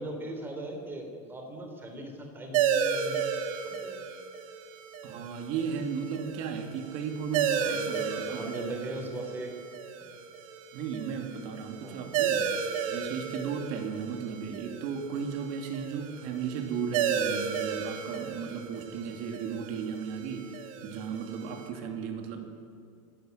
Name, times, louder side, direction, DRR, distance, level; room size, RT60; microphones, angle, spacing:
voice 1, 0.0-3.2 3.6-4.0 7.6-9.6 11.8-12.1, right 1 dB, 10° right, 3 dB, 3.5 m, -39 dB
sound 1, 2.5-21.7, right 7 dB, 70° right, 2.6 m, -34 dB
voice 2, 5.0-8.0 8.3-9.0 10.7-12.5 12.9-22.5, right 6 dB, 40° right, 5 dB, 2.6 m, -35 dB
25.0 x 13.0 x 9.4 m, 2.4 s
supercardioid pair, 170°, 18 cm